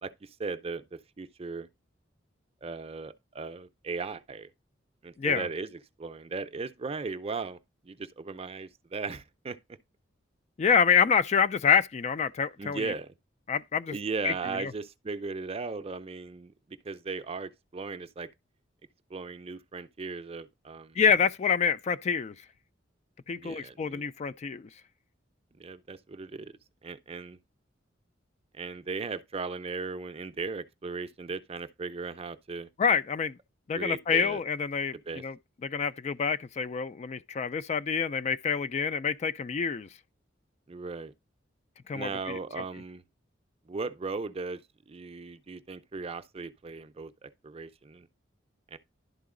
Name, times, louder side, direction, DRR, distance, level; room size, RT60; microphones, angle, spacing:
voice 1, 0.0-1.7 2.6-4.5 5.0-5.7 6.0-7.6 7.8-9.6 12.6-13.1 13.9-18.3 19.1-21.0 23.3-24.0 25.6-26.5 26.8-27.4 28.5-32.7 33.7-34.4 35.1-35.2 40.7-41.1 41.9-43.0 43.7-48.1 48.7-48.8, right 4 dB, 30° right, 0.5 m, -37 dB
voice 2, 10.6-12.9 13.5-14.0 14.2-14.7 21.0-22.3 23.3-24.7 32.8-33.4 33.7-35.4 35.6-39.9 41.9-42.6, left 6 dB, 35° left, 0.3 m, -27 dB
11.5 x 3.8 x 3.7 m
head